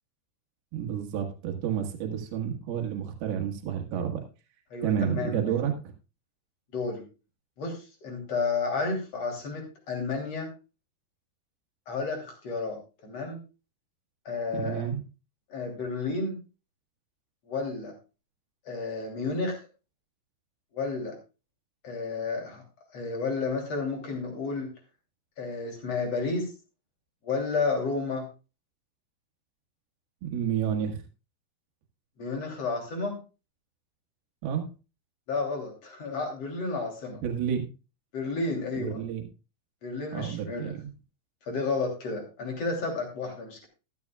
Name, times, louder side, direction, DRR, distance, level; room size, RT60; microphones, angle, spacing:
voice 1, 0.7-4.2 4.8-5.7 14.5-15.0 30.2-31.0 34.4-34.7 37.2-37.6 38.8-39.2 40.1-40.8, right 8 dB, 75° right, 3 dB, 3.4 m, -30 dB
voice 2, 4.7-5.6 6.7-7.0 7.6-10.5 11.9-13.4 14.3-14.8 15.5-16.4 17.5-17.9 18.7-19.6 20.7-21.2 21.8-22.6 22.9-24.7 25.4-26.5 27.2-28.3 32.2-33.2 35.3-37.2 38.1-39.0 39.8-40.7 41.5-43.7, left 3 dB, 40° left, 2 dB, 3.7 m, -31 dB
13.5 x 12.5 x 2.3 m, 0.30 s
omnidirectional pair, 4.6 m